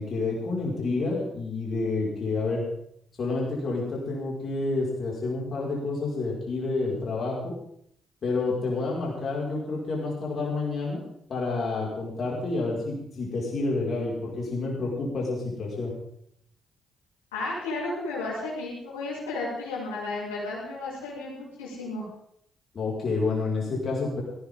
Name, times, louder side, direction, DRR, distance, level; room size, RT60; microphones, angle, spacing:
voice 1, 0.0-2.6 3.2-7.5 8.2-11.0 11.3-15.9 22.7-24.2, left 3 dB, 50° left, -4 dB, 5.7 m, -29 dB
voice 2, 17.3-22.1, left 2 dB, 80° left, -7 dB, 6.9 m, -33 dB
18.5 x 17.5 x 3.9 m, 0.70 s
figure-of-eight pair, 40°, 0 cm